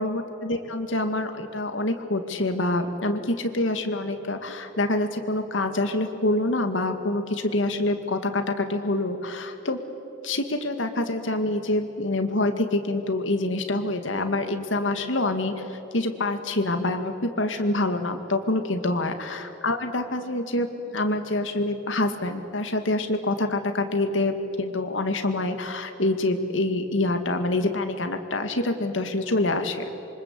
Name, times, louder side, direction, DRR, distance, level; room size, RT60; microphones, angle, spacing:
voice 1, 0.0-9.8 10.2-29.9, left 2 dB, 85° left, 7 dB, 2.1 m, -26 dB
27.0 x 24.5 x 8.4 m, 3.0 s
head